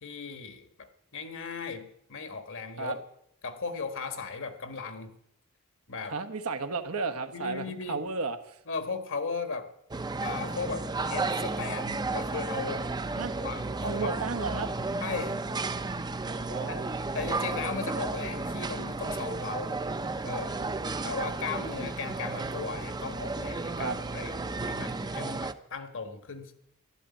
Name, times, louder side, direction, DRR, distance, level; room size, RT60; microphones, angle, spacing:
voice 1, 0.0-3.0 3.4-5.2 5.9-6.1 7.3-8.0 8.7-9.7 10.2-12.9 13.4-13.6 13.9-14.1 15.0-15.6 16.7-16.8 17.1-19.7 20.2-20.5 21.0-26.5, left 4 dB, 60° left, 9 dB, 1.5 m, -37 dB
voice 2, 6.1-8.6 13.1-13.3 13.8-14.7 16.5-16.9 20.6-20.7 23.8-24.0, right 4 dB, 90° right, 8 dB, 1.4 m, -33 dB
sound 1, 9.9-25.5, right 3 dB, 20° right, 0.6 m, -33 dB
12.0 x 11.5 x 8.4 m, 0.77 s
head